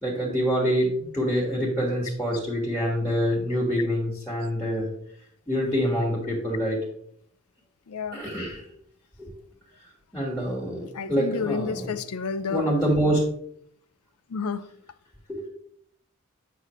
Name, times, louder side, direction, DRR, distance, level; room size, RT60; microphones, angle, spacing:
voice 1, 0.0-4.9 5.5-6.8 8.1-8.7 9.2-9.3 10.1-11.9 12.5-13.2 15.3-15.5, equal, 5° left, 1.5 m, -26 dB
voice 2, 7.9-8.2 10.9-12.7 14.3-14.7, left 5 dB, 90° left, 0.5 m, -30 dB
8.1 x 5.8 x 3.1 m
head